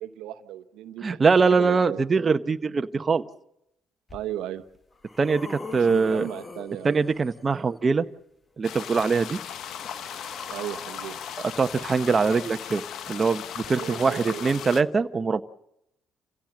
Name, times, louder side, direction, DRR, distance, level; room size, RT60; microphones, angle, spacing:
voice 1, 0.0-1.2 1.5-2.0 4.1-4.6 5.7-7.0 10.5-11.2 13.7-14.5, right 12 dB, 80° right, 10 dB, 0.9 m, -36 dB
voice 2, 1.0-3.2 5.2-6.3 6.8-8.0 8.6-9.4 11.6-12.8 13.1-15.4, right 4 dB, 35° right, 9 dB, 0.8 m, -23 dB
sound 1, 4.1-4.2 4.7-7.5 8.7-12.6 13.6-13.7, left 3 dB, 30° left, 1.3 m, -43 dB
sound 2, 8.6-14.8, left 9 dB, 70° left, 0.9 m, -37 dB
27.5 x 16.0 x 7.4 m, 0.82 s
supercardioid pair, 60°, 0 cm